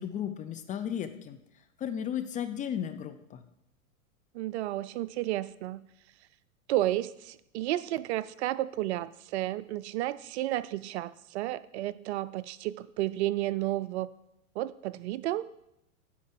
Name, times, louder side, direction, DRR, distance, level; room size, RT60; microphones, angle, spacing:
voice 1, 0.0-1.4 1.8-3.4, left 9 dB, 20° left, 8 dB, 0.5 m, -34 dB
voice 2, 4.3-5.9 6.7-14.1 14.6-15.5, right 15 dB, 55° right, 17 dB, 0.5 m, -32 dB
10.5 x 4.4 x 7.6 m, 0.82 s
hypercardioid pair, 110°, 42 cm